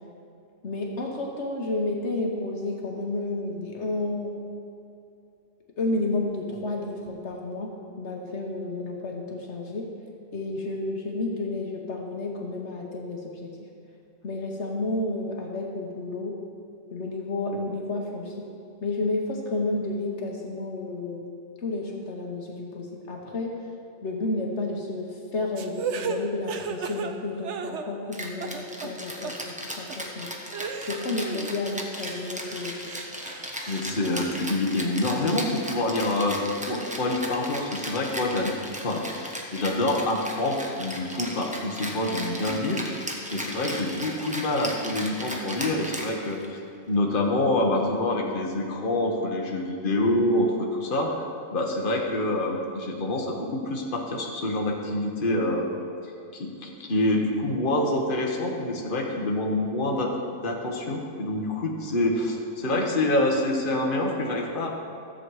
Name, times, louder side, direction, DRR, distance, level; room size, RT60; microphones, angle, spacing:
voice 1, 0.6-4.3 5.8-9.9 10.3-13.7 14.2-16.4 16.9-18.5 18.8-21.3 21.6-23.5 24.0-30.3 30.8-32.9, left 2 dB, 70° left, 0 dB, 1.4 m, -31 dB
sound 1, 25.6-28.1 28.4-28.9 29.2-29.3 29.9-30.0 30.5-31.5 31.9-33.8, right 6 dB, 70° right, 1.0 m, -35 dB
Rattle (instrument), 28.1-46.6, equal, 5° right, 1.0 m, -36 dB
voice 2, 33.7-36.4 36.7-38.6 38.8-42.8 43.3-46.6 46.9-55.7 56.3-64.7, left 1 dB, 45° left, 0 dB, 1.4 m, -26 dB
14.0 x 7.7 x 4.8 m, 2.6 s
omnidirectional pair, 1.2 m